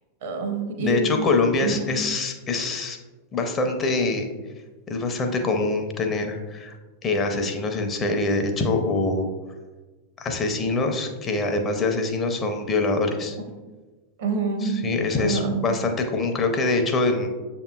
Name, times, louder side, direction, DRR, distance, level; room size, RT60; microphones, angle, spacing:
voice 1, 0.2-1.0 1.6-1.9 14.2-14.8 15.1-15.6, right 4 dB, 55° right, 4 dB, 0.7 m, -26 dB
voice 2, 0.8-3.0 3.3-4.3 4.9-6.8 7.0-9.3 10.2-13.4 14.6-17.3, left 3 dB, 25° left, 4 dB, 0.5 m, -24 dB
6.6 x 2.9 x 2.3 m, 1.3 s
figure-of-eight pair, 90°, 0 cm